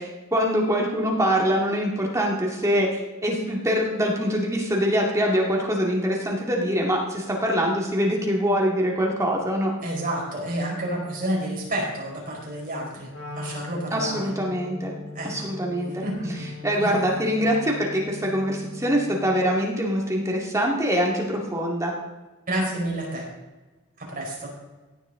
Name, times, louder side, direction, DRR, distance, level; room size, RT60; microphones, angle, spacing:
voice 1, 0.0-9.7 13.9-14.9 15.2-16.0 16.6-21.9, equal, 15° right, -2 dB, 2.1 m, -24 dB
voice 2, 9.8-13.1 13.3-14.3 15.1-15.5 15.9-16.5 16.8-17.0 22.5-23.3 24.0-24.5, right 1 dB, 40° right, -2 dB, 4.8 m, -29 dB
Wind instrument woodwind instrument, 13.1-19.5, left 3 dB, 65° left, 3.9 m, -39 dB
16.5 x 10.0 x 3.8 m, 1.2 s
head